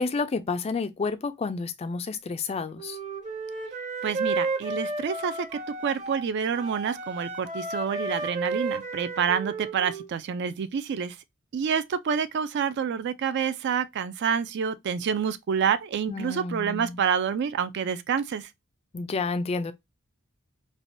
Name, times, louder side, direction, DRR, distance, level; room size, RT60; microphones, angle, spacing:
voice 1, 0.0-3.0 16.1-17.0 18.9-19.7, left 4 dB, 30° left, 0.3 m, -30 dB
Wind instrument woodwind instrument, 2.8-6.2 6.5-10.1, right 3 dB, 35° right, 0.8 m, -32 dB
voice 2, 4.0-11.1 11.5-18.5, right 7 dB, 55° right, 0.3 m, -28 dB
3.3 x 2.2 x 2.5 m
head